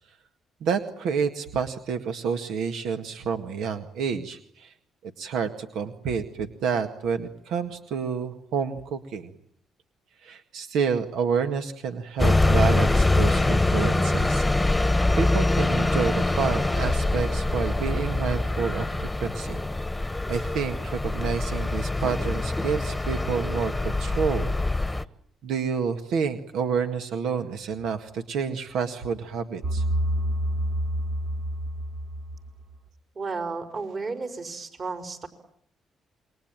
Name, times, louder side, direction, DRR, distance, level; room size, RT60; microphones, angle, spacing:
voice 1, 0.6-4.7 5.0-9.3 10.2-19.6 20.3-24.5 25.4-29.8, right 6 dB, 85° right, 7 dB, 1.8 m, -29 dB
sound 1, 12.2-25.0, left 2 dB, 10° left, 1.2 m, -24 dB
sound 2, 29.6-32.8, equal, 60° right, 2.7 m, -28 dB
voice 2, 33.2-35.3, right 4 dB, 45° right, 6 dB, 5.2 m, -33 dB
28.0 x 23.0 x 9.0 m, 0.71 s
cardioid pair, 90°, 0 cm